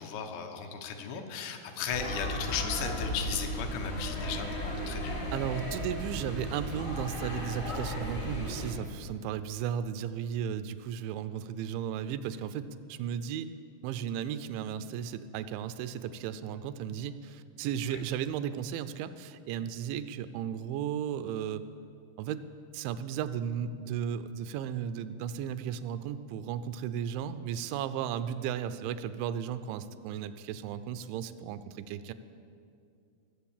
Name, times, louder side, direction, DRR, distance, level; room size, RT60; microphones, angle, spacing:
voice 1, 0.0-5.3 17.9-18.0, left 7 dB, 75° left, 4 dB, 3.2 m, -36 dB
sound 1, 1.9-8.7, equal, 50° left, 0.7 m, -35 dB
voice 2, 5.3-13.5 13.8-21.6 22.2-22.4 22.7-32.1, right 9 dB, 85° right, 12 dB, 2.9 m, -35 dB
19.0 x 7.6 x 7.2 m, 2.4 s
omnidirectional pair, 5.3 m